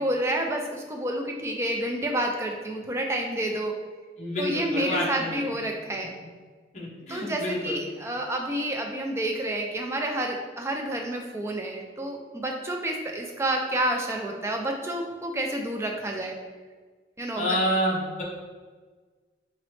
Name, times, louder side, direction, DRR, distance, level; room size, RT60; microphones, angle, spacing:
voice 1, 0.0-3.7 4.4-6.1 7.1-16.4 17.2-17.6, right 1 dB, 15° right, 1 dB, 0.4 m, -29 dB
voice 2, 4.2-5.5 6.7-7.8 17.4-18.2, equal, 40° left, -4 dB, 0.8 m, -28 dB
3.8 x 3.0 x 3.1 m, 1.4 s
head